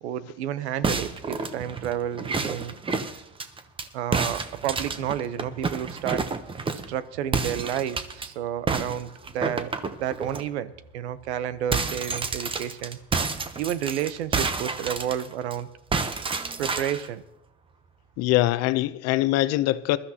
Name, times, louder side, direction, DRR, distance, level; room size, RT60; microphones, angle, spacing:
voice 1, 0.0-2.8 3.9-6.3 6.9-9.7 10.0-13.0 13.6-15.7 16.6-17.2, right 10 dB, 90° right, 0.9 m, -31 dB
sound 1, 0.8-3.9 4.1-6.9 7.3-8.3 8.7-10.4 10.8-11.0 11.3-15.5 15.9-17.1, right 4 dB, 15° right, 0.8 m, -29 dB
voice 2, 18.2-20.0, left 16 dB, 50° left, 0.7 m, -23 dB
21.0 x 13.0 x 2.9 m
supercardioid pair, 120°, 32 cm